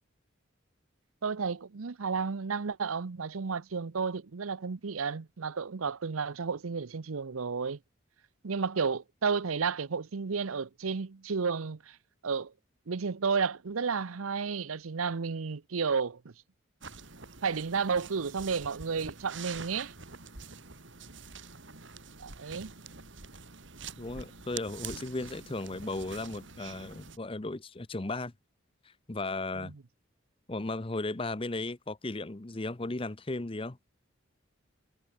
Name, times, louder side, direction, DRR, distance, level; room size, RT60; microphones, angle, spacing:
voice 1, 1.2-7.8 8.4-12.0 12.2-12.5 12.9-16.3 17.4-19.9 22.2-22.7 29.6-29.8, right 5 dB, 90° right, 0.7 m, -32 dB
sound 1, 16.8-27.2, right 5 dB, 65° right, 3.2 m, -46 dB
voice 2, 24.0-28.3 29.1-29.7 30.5-33.8, left 2 dB, 25° left, 0.7 m, -35 dB
head